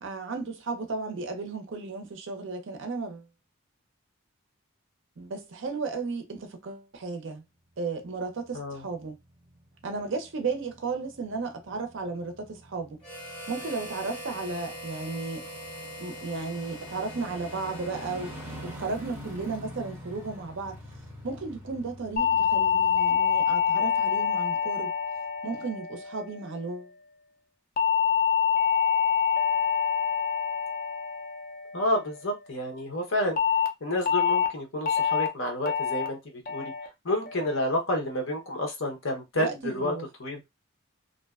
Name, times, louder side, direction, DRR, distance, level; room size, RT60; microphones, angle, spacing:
voice 1, 0.0-3.2 5.2-7.4 7.8-9.2 9.8-13.0 13.5-15.4 16.0-18.3 18.6-20.8 21.2-24.9 25.4-26.9 39.3-40.1, right 4 dB, 60° right, 0.5 m, -34 dB
sound 1, 8.0-24.4 24.8-24.9, equal, 10° right, 0.7 m, -46 dB
Harmonica, 13.0-19.0, equal, 20° left, 1.1 m, -42 dB
sound 2, 22.2-26.6 27.8-32.2 33.4-33.7 34.1-34.5 34.9-35.3 35.7-36.1 36.5-36.9 37.3-37.7, left 7 dB, 40° left, 0.4 m, -26 dB
voice 2, 31.7-33.4 33.8-36.2 36.5-36.7 37.0-39.9 40.2-40.4, left 1 dB, 65° left, 0.8 m, -29 dB
2.6 x 2.1 x 2.3 m
head